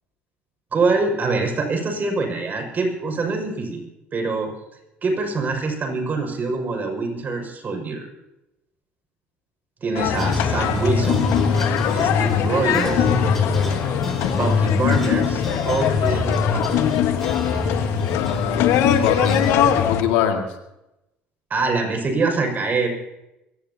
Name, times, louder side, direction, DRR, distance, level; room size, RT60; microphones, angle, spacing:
voice 1, 0.7-3.8 4.1-4.5 5.0-8.1 9.8-11.3 11.9-13.1 14.3-16.9 21.5-22.9, right 3 dB, 40° right, 3 dB, 6.0 m, -24 dB
sound 1, 10.0-20.0, left 9 dB, 75° left, 1.4 m, -22 dB
sound 2, 10.2-19.9, left 3 dB, 5° left, 4.9 m, -26 dB
voice 2, 18.1-19.4 19.8-20.5, left 9 dB, 90° left, 3 dB, 2.1 m, -23 dB
22.5 x 17.5 x 2.9 m, 0.91 s
supercardioid pair, 85°, 5 cm